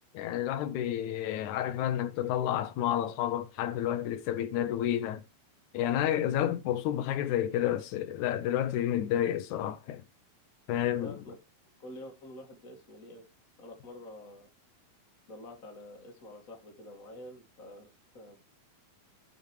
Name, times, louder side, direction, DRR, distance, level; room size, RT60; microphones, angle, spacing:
voice 1, 0.1-5.2 5.7-10.0 10.7-11.2, left 11 dB, 85° left, 1.7 m, -30 dB
voice 2, 11.0-11.4 11.8-13.2 13.6-14.5 15.3-18.4, left 1 dB, 30° left, 1.9 m, -47 dB
16.0 x 6.6 x 3.2 m
omnidirectional pair, 4.2 m